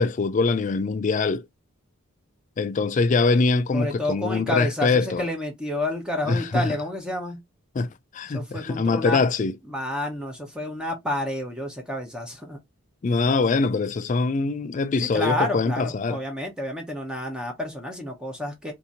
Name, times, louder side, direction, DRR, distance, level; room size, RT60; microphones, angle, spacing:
voice 1, 0.0-1.5 2.6-5.2 6.3-6.7 7.8-9.5 13.0-16.2, left 4 dB, 35° left, 0.3 m, -23 dB
voice 2, 3.7-7.4 8.3-9.2 9.7-12.6 15.0-18.7, left 1 dB, 5° right, 0.7 m, -29 dB
2.8 x 2.6 x 3.8 m
head